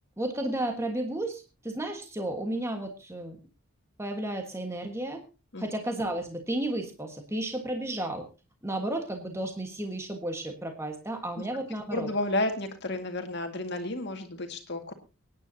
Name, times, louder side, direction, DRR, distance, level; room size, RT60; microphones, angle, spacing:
voice 1, 0.2-3.4 4.0-5.2 5.6-8.2 8.6-12.1, right 1 dB, 10° right, 4 dB, 1.5 m, -33 dB
voice 2, 11.9-14.9, left 2 dB, 50° left, 5 dB, 2.0 m, -32 dB
24.5 x 9.8 x 2.8 m, 0.30 s
head